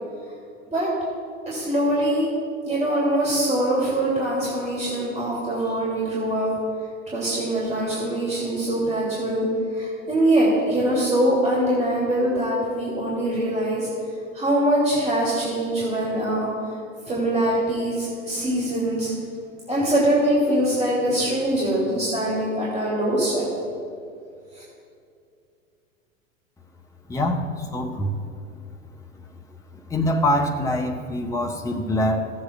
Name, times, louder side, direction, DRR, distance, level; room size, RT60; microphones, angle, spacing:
voice 1, 1.5-2.3 2.6-6.5 7.1-9.5 9.7-13.9 14.3-16.5 17.0-19.1 19.7-23.5 24.5-24.6, right 1 dB, 15° right, -7 dB, 2.4 m, -23 dB
voice 2, 27.1-28.1 29.9-32.3, left 1 dB, 10° left, 2 dB, 0.8 m, -24 dB
16.5 x 7.4 x 2.3 m, 2.5 s
figure-of-eight pair, 85°, 39 cm